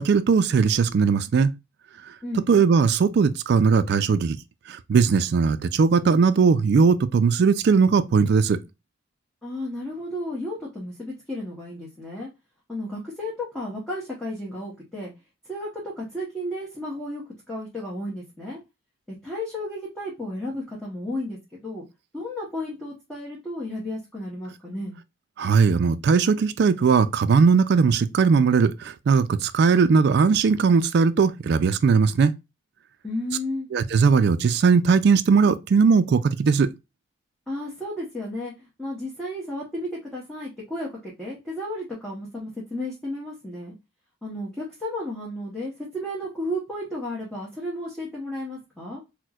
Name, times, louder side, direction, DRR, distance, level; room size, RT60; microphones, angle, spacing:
voice 1, 0.0-1.5 2.5-4.4 4.7-8.6 25.4-32.3 33.7-36.7, right 5 dB, 50° right, 0.3 m, -19 dB
voice 2, 9.4-12.3 12.7-15.1 15.5-17.2 17.5-18.6 19.1-21.8 22.1-25.0 33.0-33.7 37.5-43.7 44.2-49.0, left 1 dB, 5° left, 0.8 m, -33 dB
4.3 x 2.1 x 2.3 m
head